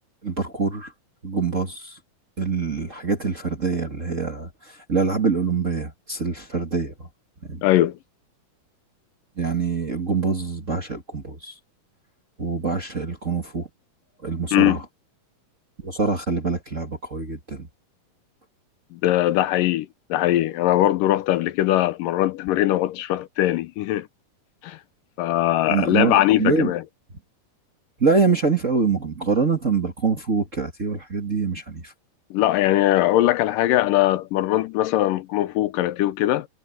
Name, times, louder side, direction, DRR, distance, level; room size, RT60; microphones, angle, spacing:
voice 1, 0.2-0.9 1.2-2.0 2.4-7.1 7.4-7.6 9.4-11.6 12.4-13.7 14.2-14.8 15.8-17.7 25.6-26.7 28.0-31.9, right 4 dB, 30° right, 1.8 m, -25 dB
voice 2, 7.6-8.0 14.5-14.8 18.9-24.1 24.6-24.8 25.2-26.8 32.3-36.5, left 14 dB, 80° left, 2.3 m, -21 dB
omnidirectional pair, 4.0 m